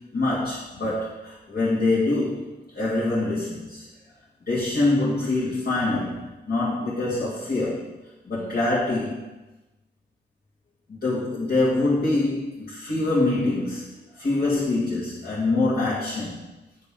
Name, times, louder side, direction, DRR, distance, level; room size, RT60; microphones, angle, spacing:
voice 1, 0.1-3.8 4.4-7.9 8.3-9.2 10.9-13.9 14.2-16.4, left 2 dB, 55° left, -10 dB, 2.3 m, -25 dB
8.8 x 6.8 x 3.8 m, 1.0 s
wide cardioid pair, 130°, 19 cm